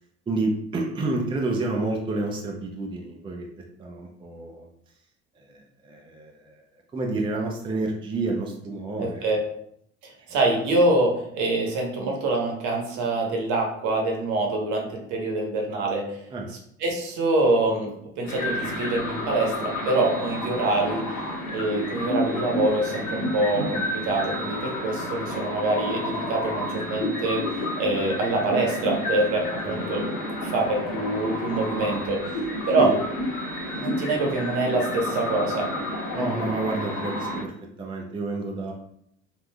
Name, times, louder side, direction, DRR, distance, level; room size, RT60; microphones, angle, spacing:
voice 1, 0.3-3.5 3.8-4.7 5.4-9.2 10.2-10.4 16.3-16.5 29.6-29.9 32.8-32.9 36.1-37.5 37.8-38.7, right 2 dB, 15° right, 1 dB, 0.5 m, -29 dB
voice 2, 9.0-9.4 10.0-16.2 16.8-21.2 21.5-27.4 27.8-30.0 30.4-32.4 32.7-32.9 33.7-35.7 36.2-36.5, right 2 dB, 60° right, 1 dB, 0.9 m, -25 dB
sound 1, 18.2-37.4, left 1 dB, 60° left, 1.3 m, -30 dB
3.3 x 2.4 x 2.2 m, 0.71 s
hypercardioid pair, 75°, 33 cm